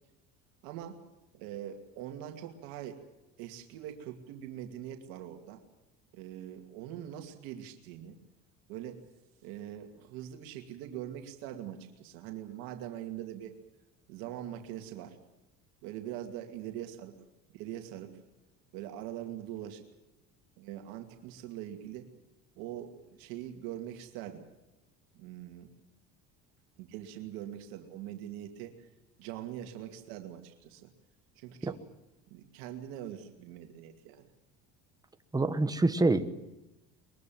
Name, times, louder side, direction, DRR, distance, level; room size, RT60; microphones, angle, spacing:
voice 1, 0.6-1.0 1.3-3.0 3.4-5.6 6.1-8.1 8.7-9.0 9.4-13.6 14.1-15.2 15.8-17.1 17.5-18.2 18.7-19.8 20.6-22.1 22.6-24.4 25.1-25.7 26.8-28.9 29.2-30.9 31.4-31.8 32.3-34.3, right 11 dB, 85° right, 4 dB, 2.5 m, -42 dB
voice 2, 35.3-36.3, right 2 dB, 10° right, 10 dB, 1.3 m, -26 dB
23.0 x 22.0 x 7.7 m, 0.98 s
cardioid pair, 125°, 34 cm